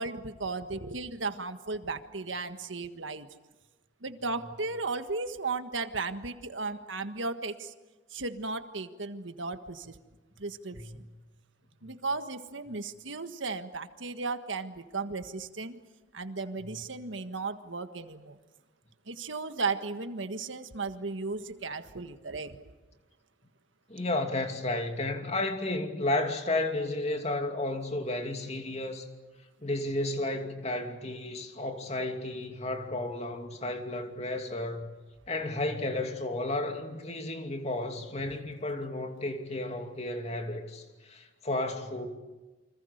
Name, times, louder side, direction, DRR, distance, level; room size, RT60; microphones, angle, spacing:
voice 1, 0.0-3.3 4.0-7.7 8.1-10.0 10.4-11.0 11.8-15.8 16.1-18.4 19.1-22.6, right 3 dB, 90° right, 1.6 m, -35 dB
voice 2, 23.9-29.1 29.6-34.9 35.3-42.1, left 2 dB, 35° left, 2.7 m, -32 dB
29.0 x 26.0 x 6.6 m
head